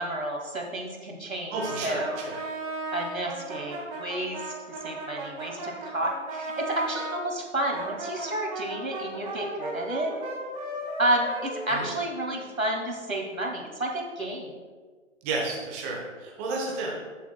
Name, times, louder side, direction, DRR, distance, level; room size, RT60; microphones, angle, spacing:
voice 1, 0.0-2.2 2.9-4.5 4.8-10.1 11.0-14.5, right 1 dB, 90° right, 1 dB, 2.1 m, -30 dB
voice 2, 1.5-2.3 11.7-11.9 15.2-16.9, right 3 dB, 10° right, -3 dB, 0.8 m, -32 dB
Brass instrument, 1.5-7.2 7.7-12.5, right 2 dB, 25° right, 3.1 m, -36 dB
17.0 x 7.0 x 2.2 m, 1.4 s
figure-of-eight pair, 140°, 39 cm